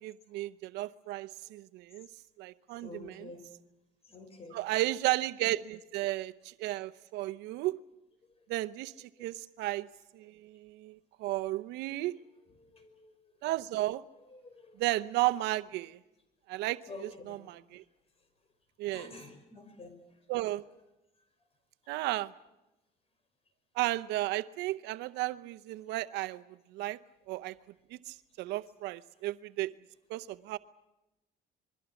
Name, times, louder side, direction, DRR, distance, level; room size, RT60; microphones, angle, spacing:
voice 1, 0.0-2.1 2.4-3.3 4.5-7.8 8.5-9.9 10.1-12.2 13.4-14.0 14.8-16.0 16.5-17.8 18.8-19.1 20.3-20.6 21.9-22.3 23.8-26.4 26.7-27.0 27.3-27.5 27.9-29.7 30.1-30.6, right 17 dB, 90° right, 11 dB, 0.8 m, -34 dB
voice 2, 2.7-3.4 4.1-4.6 9.2-9.3 12.5-13.1 14.3-14.7 16.9-17.4 18.9-20.0, left 3 dB, 35° left, 9 dB, 5.6 m, -49 dB
27.5 x 22.0 x 7.1 m, 0.96 s
cardioid pair, 110°, 17 cm